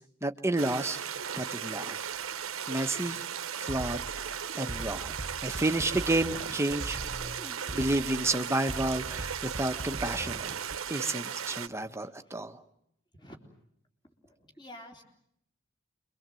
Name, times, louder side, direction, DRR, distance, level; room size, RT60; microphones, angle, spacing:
voice 1, 0.2-2.1 2.7-3.2 3.6-5.1 5.4-7.0 7.7-10.4 10.9-12.6, right 2 dB, 15° right, 7 dB, 1.2 m, -31 dB
sound 1, 0.6-11.7, right 8 dB, 90° right, 1.0 m, -36 dB
Drum kit, 2.9-3.1 3.6-10.8, right 1 dB, 35° right, 1.3 m, -41 dB
voice 2, 4.1-5.0 7.4-7.6 11.5-11.8 13.2-13.4 14.2-15.0, equal, 20° left, 2 dB, 3.7 m, -51 dB
27.5 x 24.0 x 7.7 m, 0.73 s
head